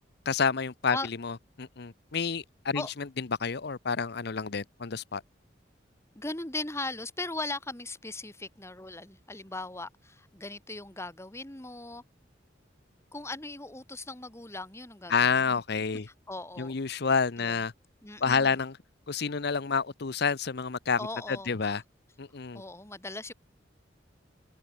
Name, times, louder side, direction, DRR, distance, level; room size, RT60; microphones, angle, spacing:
voice 1, 0.3-5.2 15.1-16.1 16.6-17.7 18.2-18.8 19.1-21.8 22.2-22.6, left 5 dB, 60° left, 0.8 m, -29 dB
voice 2, 6.2-12.0 13.1-15.6 16.3-16.8 17.4-17.6 18.0-18.6 21.0-21.8 22.5-23.3, left 2 dB, 15° left, 2.1 m, -38 dB
head